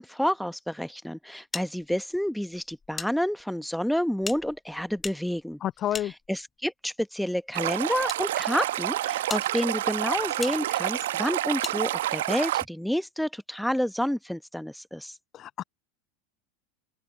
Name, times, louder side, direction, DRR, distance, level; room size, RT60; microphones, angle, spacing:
voice 1, 0.0-5.6 5.9-15.1, equal, ahead, 1.2 m, -29 dB
sound 1, 1.5-3.1 3.4-3.5 4.2-6.7 7.5-8.2 8.8-8.9 9.3-9.5 10.4-10.6 11.6-11.8, left 5 dB, 20° left, 1.5 m, -39 dB
voice 2, 5.6-6.1 15.3-15.6, left 12 dB, 35° left, 0.3 m, -29 dB
Stream, 7.5-12.6, right 14 dB, 65° right, 1.2 m, -28 dB
open air
figure-of-eight pair, 80°, 0 cm